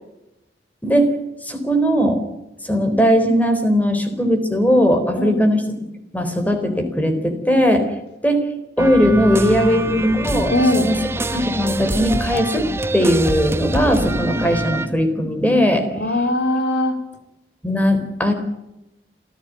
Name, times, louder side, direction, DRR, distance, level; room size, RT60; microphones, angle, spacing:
voice 1, 0.8-1.1 1.4-2.2 2.6-5.6 6.1-7.9 8.2-8.5 8.8-10.5 10.9-11.0 11.3-15.9 17.6-18.3, equal, 10° left, 7 dB, 4.0 m, -18 dB
sound 1, 8.8-14.9, right 1 dB, 15° right, 1.2 m, -25 dB
voice 2, 9.6-10.1 10.5-10.9 15.9-16.9, left 1 dB, 90° left, 6 dB, 4.2 m, -21 dB
27.5 x 15.5 x 9.5 m, 0.92 s
head